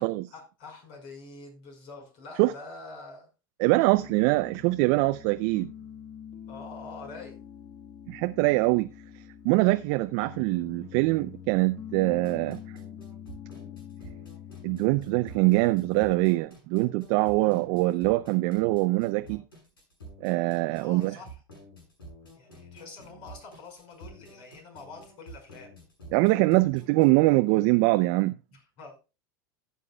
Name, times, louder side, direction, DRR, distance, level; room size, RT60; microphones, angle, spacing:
voice 1, 0.3-3.3 6.5-7.4 20.5-21.4 22.4-25.7 28.5-29.1, left 3 dB, 55° left, 5.1 m, -46 dB
voice 2, 3.6-5.7 8.1-8.9 9.4-12.6 14.6-19.4 20.2-21.2 26.1-28.4, right 21 dB, 55° right, 0.5 m, -23 dB
Piano, 4.0-16.5, left 9 dB, 40° left, 1.5 m, -45 dB
sound 1, 12.1-27.3, right 1 dB, 85° left, 6.8 m, -49 dB
15.5 x 8.2 x 2.3 m
hypercardioid pair, 85°, 11 cm